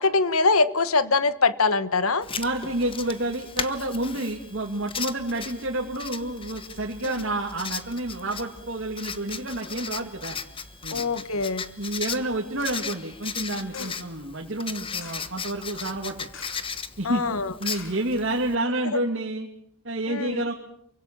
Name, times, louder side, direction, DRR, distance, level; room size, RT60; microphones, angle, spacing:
voice 1, 0.0-2.3 10.9-11.6 13.7-13.9 17.0-17.5 20.1-20.4, left 3 dB, 85° left, 14 dB, 1.4 m, -23 dB
Writing, 2.2-18.6, left 6 dB, 25° left, 1.2 m, -37 dB
voice 2, 2.4-10.4 10.8-11.0 11.8-16.1 17.0-17.2 17.6-19.5 19.8-20.5, right 1 dB, 60° right, 0 dB, 2.7 m, -29 dB
sound 1, 2.6-14.0, right 1 dB, 15° right, 7.1 m, -56 dB
sound 2, 12.6-12.9 13.7-14.1 15.0-15.4 16.3-16.8 17.0-17.1 17.7-18.5 19.0-19.1, left 5 dB, 65° left, 4.9 m, -45 dB
28.5 x 24.5 x 7.1 m, 0.71 s
head